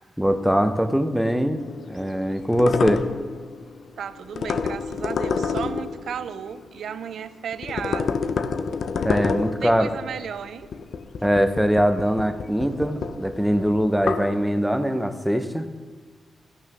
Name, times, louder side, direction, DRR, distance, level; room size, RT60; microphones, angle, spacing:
voice 1, 0.2-1.6 1.9-3.1 9.0-9.9 11.2-15.7, equal, ahead, 8 dB, 0.7 m, -22 dB
sound 1, 1.6-7.1 7.5-14.4, left 5 dB, 60° left, 0.6 m, -29 dB
voice 2, 4.0-8.3 9.4-10.7, right 8 dB, 75° right, 13 dB, 0.5 m, -34 dB
13.5 x 6.3 x 6.1 m, 1.4 s
wide cardioid pair, 145°, 0 cm